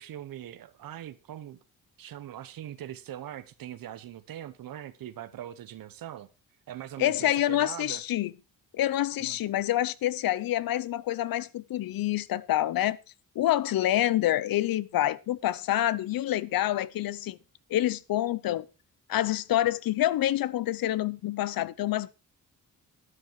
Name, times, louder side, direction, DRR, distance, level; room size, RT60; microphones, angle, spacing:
voice 1, 0.0-1.6 2.0-6.3 6.7-8.0 9.2-9.4, right 11 dB, 80° right, 1.0 m, -41 dB
voice 2, 7.0-8.3 8.7-13.0 13.3-17.4 17.7-18.7 19.1-22.1, left 13 dB, 85° left, 0.8 m, -27 dB
12.5 x 10.0 x 4.6 m
cardioid pair, 125°, 34 cm